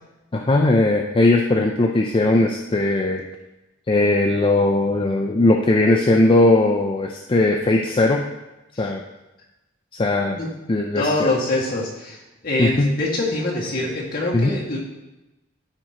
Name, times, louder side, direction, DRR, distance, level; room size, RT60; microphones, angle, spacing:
voice 1, 0.3-3.2 3.9-8.2 8.8-9.0 10.0-10.4 10.7-11.3 12.6-12.9 14.3-14.5, left 2 dB, 25° left, 1 dB, 0.5 m, -18 dB
voice 2, 11.0-14.8, left 2 dB, 50° left, -5 dB, 2.2 m, -24 dB
13.0 x 4.9 x 3.0 m, 1.0 s
head